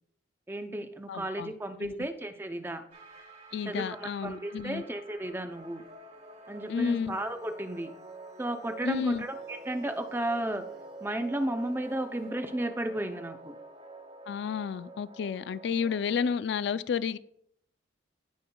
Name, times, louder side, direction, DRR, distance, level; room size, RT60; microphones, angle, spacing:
voice 1, 0.5-2.8 3.6-5.9 6.5-7.9 8.4-10.6 11.0-13.6, right 1 dB, 10° right, 0.5 m, -33 dB
voice 2, 1.1-1.5 1.8-2.0 3.5-4.8 6.7-7.2 8.8-9.3 14.3-17.2, left 6 dB, 65° left, 0.3 m, -31 dB
sound 1, 2.9-16.4, right 2 dB, 45° right, 2.4 m, -47 dB
15.5 x 5.5 x 2.3 m
head